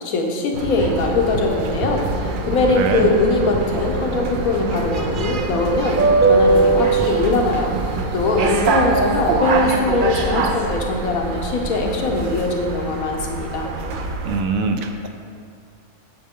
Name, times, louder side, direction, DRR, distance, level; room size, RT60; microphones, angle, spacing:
voice 1, 0.0-6.0 6.3-7.7 8.1-13.7, left 2 dB, 80° left, 1 dB, 1.4 m, -21 dB
sound 1, 0.5-14.4, right 3 dB, 60° right, 0.5 m, -22 dB
voice 2, 2.8-3.1 14.2-15.1, right 4 dB, 75° right, 5 dB, 1.0 m, -22 dB
8.5 x 6.6 x 3.7 m, 2.4 s
omnidirectional pair, 1.5 m